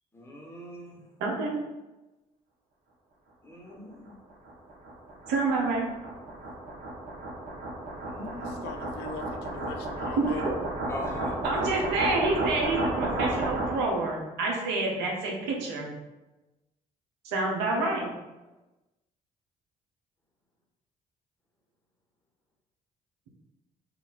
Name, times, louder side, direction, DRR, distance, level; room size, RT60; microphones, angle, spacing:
voice 1, 0.1-1.0 3.4-4.1 8.0-8.7 10.9-11.4, left 1 dB, 15° left, -2 dB, 1.2 m, -40 dB
voice 2, 1.2-1.6 5.3-5.9 10.2-10.4 11.4-15.9 17.2-18.1, right 3 dB, 80° right, -1 dB, 0.9 m, -28 dB
sound 1, 4.1-14.0, right 1 dB, 55° right, 1.1 m, -33 dB
voice 3, 8.4-10.5, left 6 dB, 70° left, 6 dB, 0.5 m, -40 dB
3.0 x 2.5 x 4.0 m, 1.1 s
hypercardioid pair, 55°, 18 cm